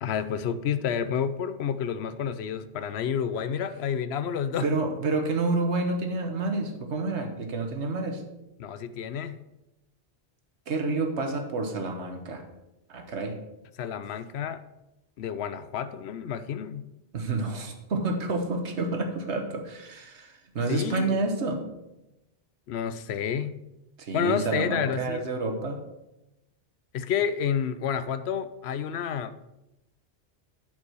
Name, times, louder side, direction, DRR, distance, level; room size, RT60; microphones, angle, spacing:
voice 1, 0.0-4.7 8.6-9.4 13.8-14.6 15.2-16.8 20.7-21.2 22.7-23.5 24.1-25.3 26.9-29.3, left 8 dB, 75° left, 13 dB, 0.8 m, -29 dB
voice 2, 4.6-8.2 10.7-12.4 12.9-13.4 17.1-21.6 24.0-25.8, right 3 dB, 80° right, 5 dB, 1.5 m, -29 dB
8.0 x 5.4 x 6.3 m, 0.95 s
omnidirectional pair, 1.1 m